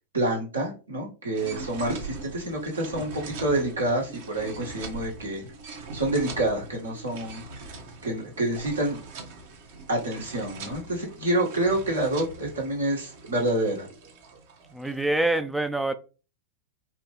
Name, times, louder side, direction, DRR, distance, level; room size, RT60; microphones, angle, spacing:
voice 1, 0.1-5.5 5.9-7.5 8.0-9.0 9.9-13.9, right 1 dB, 75° right, 1.7 m, -27 dB
sound 1, 1.3-15.3, right 4 dB, 55° right, 1.1 m, -42 dB
voice 2, 14.7-15.9, right 2 dB, 5° right, 0.4 m, -25 dB
4.8 x 2.9 x 3.2 m
figure-of-eight pair, 90°, 0 cm